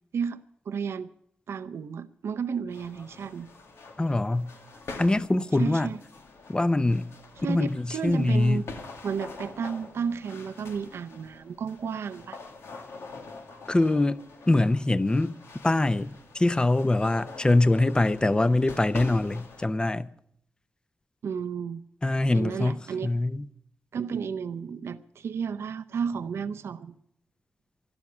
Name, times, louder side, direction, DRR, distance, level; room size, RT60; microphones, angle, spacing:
voice 1, 0.7-1.1 1.5-3.5 5.6-6.0 7.4-8.7 9.0-12.4 21.2-21.8 22.3-23.1 23.9-26.9, right 6 dB, 85° right, 0.6 m, -32 dB
sound 1, 2.7-19.7, left 3 dB, 90° left, 1.9 m, -45 dB
voice 2, 4.0-4.5 5.0-5.9 6.5-7.1 7.5-8.6 13.7-15.3 15.6-20.1 22.0-23.4, left 2 dB, 20° left, 0.6 m, -24 dB
12.0 x 12.0 x 8.4 m
wide cardioid pair, 85°, 4 cm